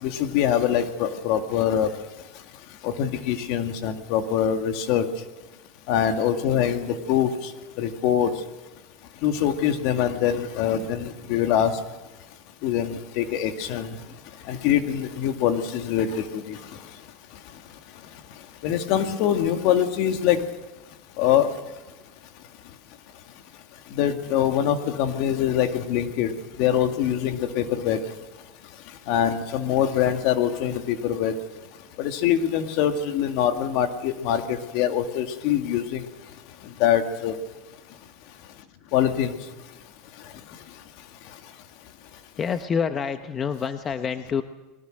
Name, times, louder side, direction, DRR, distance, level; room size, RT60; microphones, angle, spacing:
voice 1, 0.0-1.9 2.8-5.1 5.9-7.5 7.8-8.3 9.2-11.7 12.6-14.0 14.5-16.6 18.6-20.4 21.2-21.5 23.9-26.3 26.6-28.0 29.1-31.3 32.0-36.0 36.8-37.3 38.9-39.4, left 9 dB, 60° left, 6 dB, 2.2 m, -24 dB
voice 2, 42.4-44.4, left 6 dB, 25° left, 9 dB, 0.9 m, -27 dB
21.5 x 19.0 x 6.5 m, 1.1 s
supercardioid pair, 130°, 0 cm